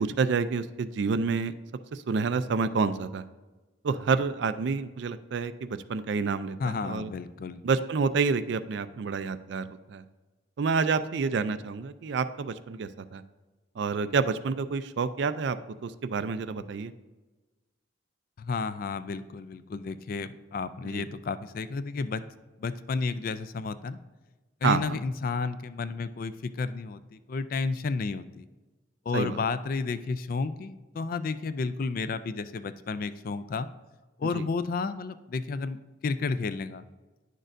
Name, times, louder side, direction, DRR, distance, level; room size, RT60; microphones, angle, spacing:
voice 1, 0.0-1.5 1.9-3.2 3.8-7.1 7.6-10.0 10.6-13.2 13.8-15.6 15.8-16.9 20.8-21.0 24.6-25.0 29.1-29.4 34.3-34.5, right 5 dB, 60° right, 13 dB, 0.4 m, -28 dB
voice 2, 6.6-7.6 18.4-22.2 22.6-24.0 24.6-28.5 29.1-33.7 34.2-36.8, left 4 dB, 45° left, 13 dB, 0.3 m, -32 dB
10.0 x 6.5 x 2.6 m, 1.2 s
head